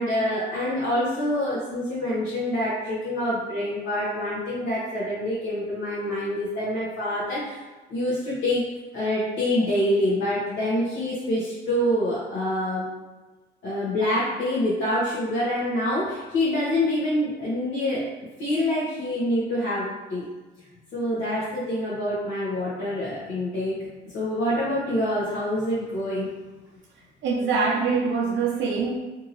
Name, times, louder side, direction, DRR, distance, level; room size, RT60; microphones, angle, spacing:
voice 1, 0.0-7.6 7.9-8.6 8.9-12.9 13.6-18.1 18.4-20.2 20.9-23.8 24.0-26.3, left 1 dB, 70° left, -9 dB, 0.9 m, -26 dB
voice 2, 27.2-29.0, right 4 dB, 70° right, -2 dB, 0.5 m, -24 dB
2.7 x 2.7 x 2.5 m, 1.2 s
cardioid pair, 90°, 20 cm